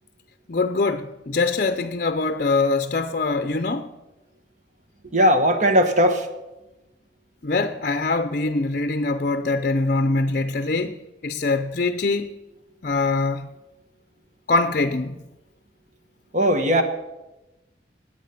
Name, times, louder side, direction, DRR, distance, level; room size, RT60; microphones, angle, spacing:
voice 1, 0.5-3.9 7.4-12.3 12.8-13.5 14.5-15.2, left 3 dB, 50° left, 0.6 m, -23 dB
voice 2, 5.1-6.3 16.3-16.8, equal, 45° right, 1.5 m, -18 dB
20.0 x 8.2 x 5.9 m
head